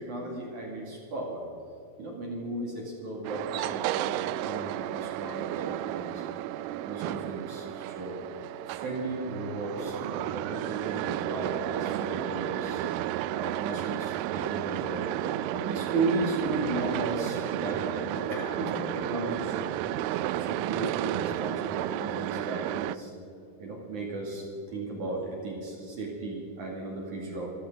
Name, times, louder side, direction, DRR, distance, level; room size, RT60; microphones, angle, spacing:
voice 1, 0.0-1.4 2.0-6.3 6.8-8.2 8.7-12.8 13.3-15.1 15.5-23.1 23.6-27.5, right 2 dB, 55° right, -2 dB, 3.5 m, -35 dB
sound 1, 3.2-23.0, right 13 dB, 90° right, 2.0 m, -32 dB
25.5 x 13.5 x 3.9 m, 2.6 s
omnidirectional pair, 4.6 m